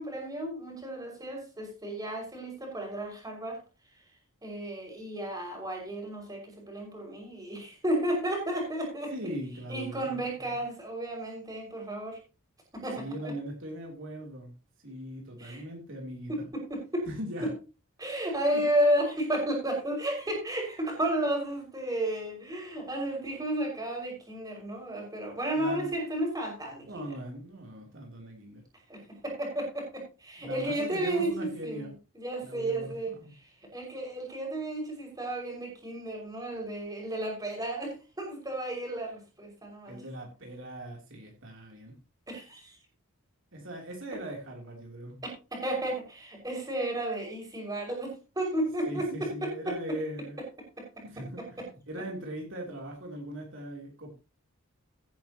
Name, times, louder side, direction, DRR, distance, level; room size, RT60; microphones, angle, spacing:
voice 1, 0.0-3.6 4.4-9.1 9.7-12.2 12.7-13.3 15.4-15.6 16.3-17.1 18.0-27.1 28.9-40.0 42.3-42.8 45.2-49.8 50.8-50.9 51.4-51.7, right 1 dB, 15° right, 1 dB, 5.8 m, -33 dB
voice 2, 9.1-10.2 12.9-14.5 14.8-16.5 17.1-17.5 18.3-18.6 25.5-25.9 26.8-28.6 30.4-31.9 32.4-33.3 39.9-41.9 43.5-45.2 48.8-50.4 51.0-54.1, right 1 dB, 60° right, 0 dB, 3.3 m, -40 dB
16.0 x 10.5 x 3.0 m, 0.31 s
head